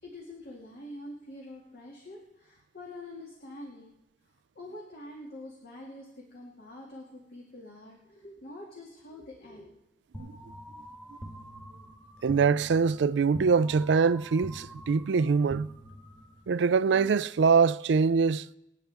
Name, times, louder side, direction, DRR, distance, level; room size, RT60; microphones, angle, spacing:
voice 1, 0.0-3.9 4.6-9.8, left 1 dB, 60° left, 2.2 m, -45 dB
sound 1, 10.1-16.5, equal, 5° left, 1.6 m, -46 dB
voice 2, 12.2-15.7 16.5-18.5, right 5 dB, 70° right, 0.4 m, -24 dB
27.0 x 9.1 x 3.5 m
head